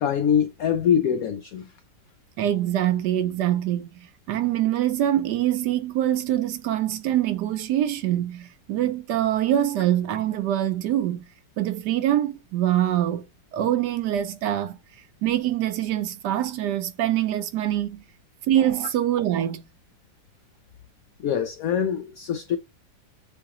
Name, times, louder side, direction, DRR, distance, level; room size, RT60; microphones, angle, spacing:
voice 1, 0.0-1.7 21.2-22.6, left 8 dB, 85° left, 0.7 m, -24 dB
voice 2, 2.4-3.9 4.3-11.2 11.6-13.3 13.5-14.8 15.2-18.0 18.5-19.6, right 12 dB, 75° right, 1.1 m, -24 dB
7.0 x 2.9 x 2.4 m
omnidirectional pair, 2.0 m